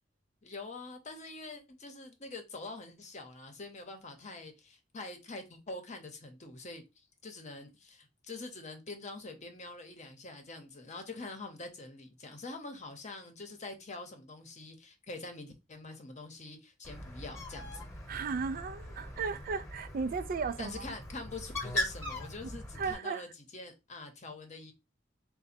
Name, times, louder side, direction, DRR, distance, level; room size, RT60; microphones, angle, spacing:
voice 1, 0.4-6.8 7.2-17.9 20.6-24.7, left 3 dB, 40° left, 0.8 m, -45 dB
Bird, 16.8-22.9, left 1 dB, 15° left, 1.1 m, -40 dB
voice 2, 18.1-20.8 22.8-23.3, right 5 dB, 50° right, 0.4 m, -35 dB
4.0 x 2.2 x 4.3 m
head